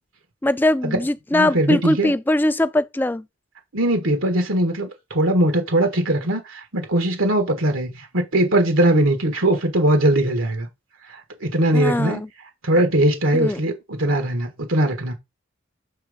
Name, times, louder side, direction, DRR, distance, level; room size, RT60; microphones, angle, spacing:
voice 1, 0.4-3.2 11.7-12.3 13.3-13.6, left 1 dB, 10° left, 0.3 m, -21 dB
voice 2, 1.3-2.1 3.7-10.7 11.1-12.2 12.6-15.1, right 1 dB, 85° right, 1.6 m, -20 dB
7.4 x 3.6 x 5.1 m
head